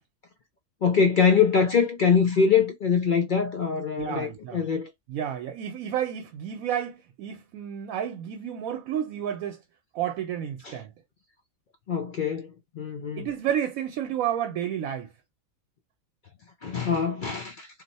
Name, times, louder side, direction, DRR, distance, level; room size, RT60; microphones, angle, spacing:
voice 1, 0.8-4.9 10.6-10.8 11.9-13.3 16.6-17.7, left 6 dB, 60° left, 0.5 m, -23 dB
voice 2, 4.0-4.6 5.1-9.6 9.9-10.9 13.2-15.1, right 10 dB, 85° right, 1.1 m, -31 dB
2.7 x 2.1 x 4.0 m
omnidirectional pair, 1.4 m